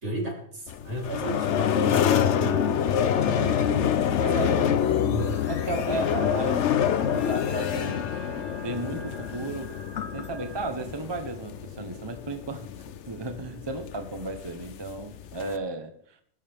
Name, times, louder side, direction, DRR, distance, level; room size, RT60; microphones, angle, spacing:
voice 1, 0.0-2.1 2.3-2.8 3.2-3.8 4.3-5.4, right 1 dB, 70° right, -1 dB, 3.8 m, -34 dB
sound 1, 0.7-15.6, left 9 dB, 70° left, 1.0 m, -27 dB
voice 2, 3.2-3.7 4.2-4.6 5.5-6.6 7.1-9.7 10.1-12.7 13.1-16.2, right 2 dB, 25° right, 7 dB, 0.9 m, -34 dB
sound 2, 5.2-10.7, right 2 dB, 85° right, 5.0 m, -48 dB
20.5 x 9.9 x 3.5 m, 0.63 s
omnidirectional pair, 1.3 m